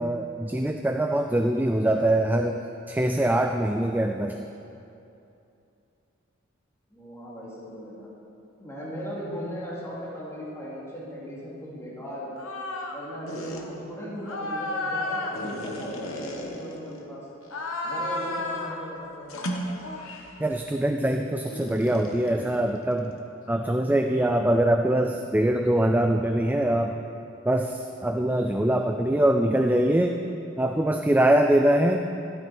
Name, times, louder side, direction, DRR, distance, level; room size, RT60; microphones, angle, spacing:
voice 1, 0.0-2.6 2.9-4.4 20.4-23.1 23.5-26.9 27.4-30.2 30.6-32.0, right 1 dB, 10° right, 4 dB, 0.4 m, -23 dB
voice 2, 6.9-8.1 8.6-12.3 12.9-17.2 17.8-19.7, equal, 15° left, -8 dB, 2.9 m, -37 dB
sound 1, 12.4-13.0 13.3-13.6 14.2-17.0 17.4-18.8 19.3-20.4 21.5-23.3, left 2 dB, 80° left, 1.3 m, -33 dB
13.0 x 12.5 x 4.4 m, 2.7 s
head